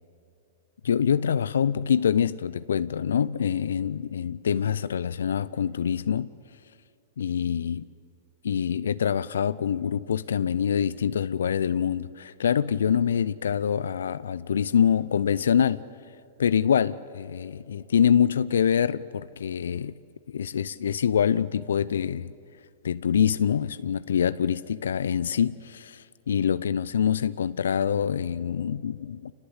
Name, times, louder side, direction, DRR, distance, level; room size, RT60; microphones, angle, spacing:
voice 1, 0.8-6.3 7.2-7.9 8.4-15.8 16.4-19.9 20.3-22.3 22.8-29.3, left 8 dB, 70° left, 0.6 m, -25 dB
27.0 x 19.0 x 8.2 m
figure-of-eight pair, 105°, 0 cm